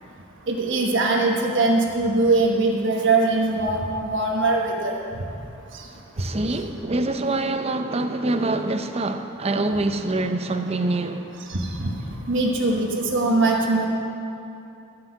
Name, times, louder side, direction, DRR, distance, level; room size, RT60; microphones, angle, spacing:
voice 1, 0.5-5.0 5.7-5.8 11.5-11.9 12.3-13.9, right 2 dB, 60° right, 1.3 m, -21 dB
voice 2, 6.2-11.3, right 2 dB, 30° right, 0.6 m, -25 dB
13.5 x 5.8 x 7.8 m
head